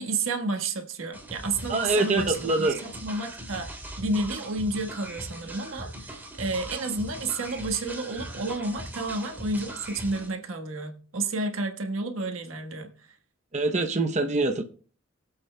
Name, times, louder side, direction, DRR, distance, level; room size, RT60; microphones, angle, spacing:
voice 1, 0.0-3.7 4.0-12.9, right 2 dB, 85° right, 1.4 m, -31 dB
sound 1, 1.1-10.3, right 1 dB, 10° right, 2.5 m, -40 dB
voice 2, 1.7-2.8 13.5-14.6, right 2 dB, 35° right, 0.7 m, -24 dB
22.5 x 8.1 x 2.2 m
head